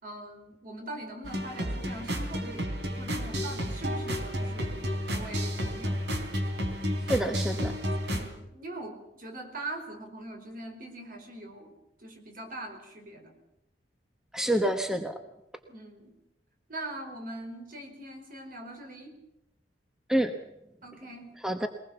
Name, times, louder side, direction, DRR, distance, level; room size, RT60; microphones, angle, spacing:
voice 1, 0.0-6.0 8.1-11.7 12.0-13.3 15.7-16.2 16.7-19.2 20.8-21.3, right 1 dB, 55° right, 4 dB, 4.5 m, -42 dB
sound 1, 1.2-8.2, equal, 80° right, 3.5 m, -31 dB
voice 2, 7.1-7.7 14.3-15.2 20.1-20.3 21.4-21.7, right 1 dB, 5° right, 7 dB, 1.1 m, -27 dB
22.5 x 19.5 x 7.0 m, 0.89 s
head